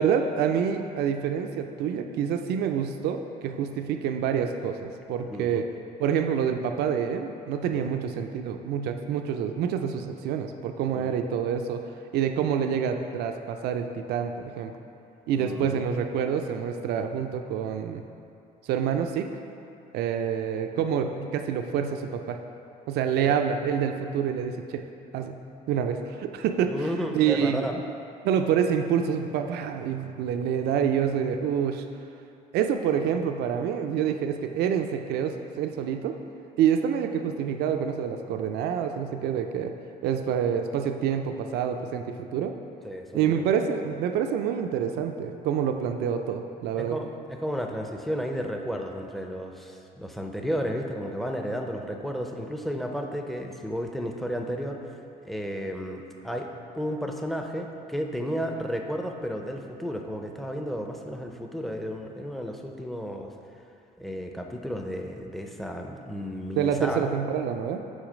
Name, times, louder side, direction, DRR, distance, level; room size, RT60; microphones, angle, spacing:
voice 1, 0.0-5.6 6.0-11.8 12.1-14.7 15.3-18.0 18.7-19.3 19.9-22.4 22.9-24.8 25.1-25.3 25.7-26.7 27.1-27.8 28.2-31.8 32.5-36.1 36.6-39.7 40.0-42.5 43.1-47.0 66.6-67.8, right 8 dB, 75° right, 6 dB, 0.4 m, -27 dB
voice 2, 5.3-5.6 7.7-7.9 10.9-11.1 15.4-15.8 23.2-23.4 26.7-27.7 42.8-43.4 46.7-54.8 55.2-56.5 56.8-63.3 64.0-67.1, equal, ahead, 2 dB, 0.5 m, -33 dB
6.3 x 3.9 x 5.0 m, 2.6 s
cardioid pair, 110°, 17 cm